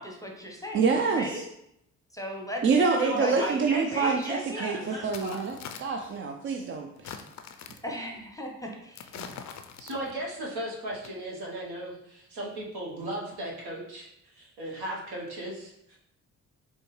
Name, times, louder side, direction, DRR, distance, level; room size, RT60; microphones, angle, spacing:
voice 1, 0.0-1.4 2.1-3.6 3.9-4.9 7.8-9.1, left 1 dB, 10° left, 1 dB, 0.8 m, -36 dB
voice 2, 0.7-1.5 2.6-7.1, right 5 dB, 30° right, 3 dB, 0.4 m, -27 dB
voice 3, 3.0-5.4 9.8-14.1 14.3-16.0, right 1 dB, 70° right, -2 dB, 1.1 m, -36 dB
Long Length Walk Snow, 4.0-4.1 5.0-6.2 7.0-8.0 9.0-10.3 10.9-11.1, left 7 dB, 45° left, 0.4 m, -44 dB
4.2 x 2.3 x 3.1 m, 0.78 s
hypercardioid pair, 45°, 40 cm